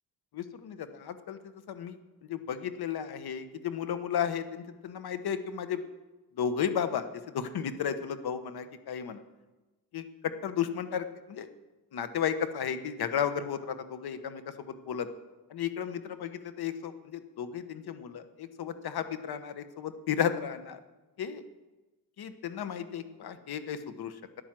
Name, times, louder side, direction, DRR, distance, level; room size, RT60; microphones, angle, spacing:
voice 1, 0.3-1.4 1.7-2.0 2.3-5.8 6.4-9.2 9.9-11.5 11.9-15.1 15.5-20.8 21.2-21.4 22.2-24.1, left 8 dB, 80° left, 10 dB, 1.3 m, -34 dB
14.0 x 10.0 x 7.6 m, 1.1 s
cardioid pair, 120°, 37 cm